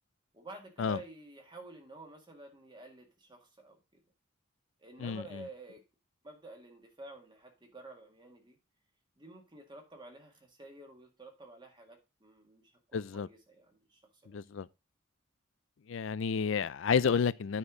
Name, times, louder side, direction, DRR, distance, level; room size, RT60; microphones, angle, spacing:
voice 1, 0.3-4.0 4.8-5.8 6.2-8.6 9.2-14.4, right 2 dB, 20° right, 1.8 m, -51 dB
voice 2, 12.9-13.3 14.3-14.7 15.9-17.6, left 6 dB, 65° left, 0.4 m, -30 dB
9.6 x 4.4 x 4.9 m
head